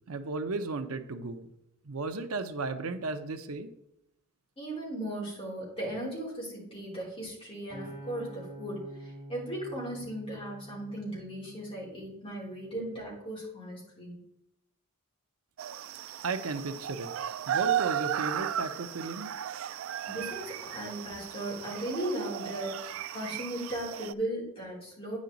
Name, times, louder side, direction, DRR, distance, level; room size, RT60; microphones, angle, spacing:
voice 1, 0.1-1.5 1.9-3.7 16.2-17.1 17.5-19.3, right 3 dB, 85° right, 9 dB, 0.7 m, -34 dB
voice 2, 4.6-14.2 20.1-25.2, right 1 dB, 25° left, -5 dB, 3.6 m, -37 dB
Acoustic guitar, 7.7-12.0 12.6-12.9, right 1 dB, 20° right, 3.7 m, -46 dB
sound 1, 15.6-24.1, right 10 dB, 65° right, 0.3 m, -35 dB
9.4 x 6.3 x 3.9 m, 0.82 s
head